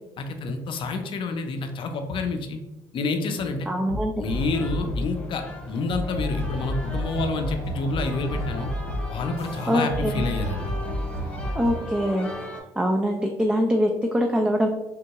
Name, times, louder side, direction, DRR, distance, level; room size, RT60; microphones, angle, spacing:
voice 1, 0.2-2.6 2.9-3.7 4.2-8.7 9.1-10.6, left 3 dB, 50° left, 5 dB, 0.6 m, -28 dB
voice 2, 3.7-4.2 9.7-10.3 11.5-12.3 12.8-14.7, equal, 10° right, 2 dB, 0.4 m, -23 dB
sound 1, 3.9-5.2 5.9-11.9, equal, 75° right, 1.0 m, -31 dB
sound 2, 4.2-12.6, left 1 dB, 10° left, 0.8 m, -39 dB
sound 3, 6.8-12.3, equal, 50° right, 1.4 m, -45 dB
3.6 x 2.2 x 2.9 m, 0.97 s
supercardioid pair, 70°, 11 cm